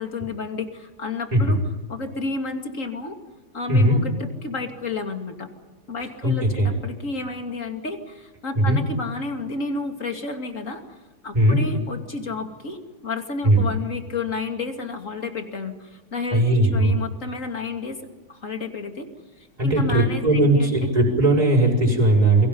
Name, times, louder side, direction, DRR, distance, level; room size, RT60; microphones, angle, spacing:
voice 1, 0.0-1.6 1.9-3.2 3.5-5.5 5.9-18.0 18.3-19.1 19.4-20.8, left 3 dB, 40° left, 5 dB, 3.0 m, -31 dB
voice 2, 6.2-6.7 8.5-8.8 11.3-11.6 13.4-13.6 16.3-17.0 19.6-22.5, right 1 dB, 20° right, -2 dB, 6.2 m, -18 dB
29.5 x 24.0 x 5.6 m, 1.2 s
omnidirectional pair, 2.1 m